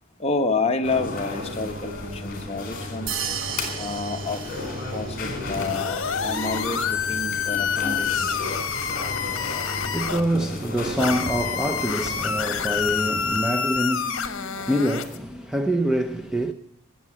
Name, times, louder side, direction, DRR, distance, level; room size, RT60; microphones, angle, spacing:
voice 1, 0.2-3.1 3.8-4.4 4.9-8.4, left 3 dB, 30° left, 1.2 m, -29 dB
sound 1, 0.8-13.4, left 2 dB, 45° left, 3.9 m, -34 dB
sound 2, 3.1-5.4, right 8 dB, 65° right, 1.0 m, -33 dB
sound 3, 5.6-10.2 11.0-15.2, left 7 dB, 60° left, 1.3 m, -27 dB
voice 2, 9.1-16.5, right 1 dB, 5° right, 0.6 m, -26 dB
17.5 x 7.4 x 8.6 m
head